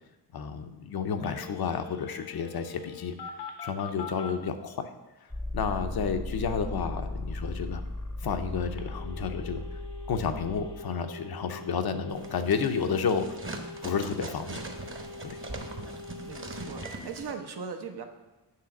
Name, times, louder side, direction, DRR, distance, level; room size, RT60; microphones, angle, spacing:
voice 1, 0.3-3.1 3.6-4.9 5.5-7.8 8.2-9.8 10.1-13.4 13.8-14.6 15.2-15.4, left 6 dB, 60° left, 8 dB, 0.7 m, -31 dB
Telephone, 1.2-4.3 8.8-16.9, left 4 dB, 80° left, 1.0 m, -44 dB
sound 1, 5.3-10.8, left 2 dB, 5° left, 0.7 m, -37 dB
sound 2, 12.1-17.3, right 2 dB, 30° right, 0.9 m, -41 dB
voice 2, 16.2-18.0, right 5 dB, 65° right, 5 dB, 0.9 m, -39 dB
7.6 x 3.4 x 5.8 m, 1.1 s
cardioid pair, 65°, 42 cm